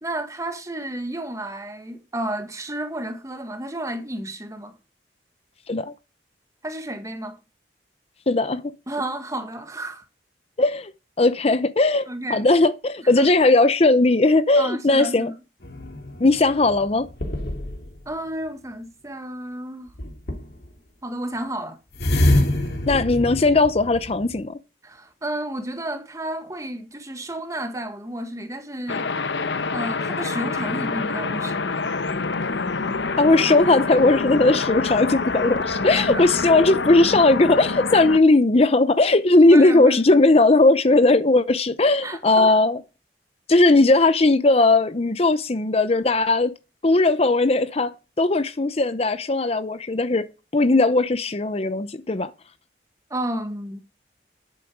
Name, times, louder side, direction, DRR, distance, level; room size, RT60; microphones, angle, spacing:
voice 1, 0.0-4.8 6.6-7.4 8.9-10.0 12.1-12.4 13.0-13.3 14.6-15.3 18.0-19.9 21.0-21.8 24.8-29.1 29.7-31.7 36.0-36.3 39.4-40.0 42.0-42.6 53.1-53.8, right 1 dB, 20° right, 1.6 m, -31 dB
voice 2, 8.3-8.7 10.6-10.9 11.2-15.3 16.2-17.1 22.9-24.6 33.2-42.8 43.5-46.5 46.8-50.3 50.5-52.3, left 2 dB, 35° left, 0.6 m, -18 dB
sound 1, 15.6-18.0 20.0-20.7 21.9-24.4, left 1 dB, 60° left, 2.4 m, -25 dB
sound 2, 28.9-38.2, left 4 dB, 85° left, 1.0 m, -26 dB
11.0 x 8.6 x 4.8 m
head